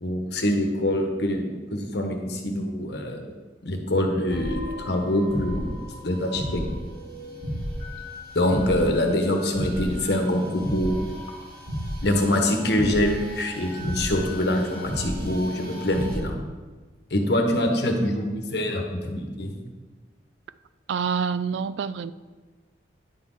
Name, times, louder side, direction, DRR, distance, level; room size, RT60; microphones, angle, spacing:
voice 1, 0.0-3.3 3.6-5.7 6.0-6.6 8.3-11.1 12.0-16.3 17.1-19.6, left 1 dB, 65° left, 3 dB, 1.1 m, -25 dB
sound 1, 4.3-16.2, equal, 55° right, 2.1 m, -34 dB
voice 2, 20.9-22.1, right 6 dB, 75° right, 15 dB, 0.3 m, -27 dB
9.8 x 6.2 x 3.8 m, 1.4 s
head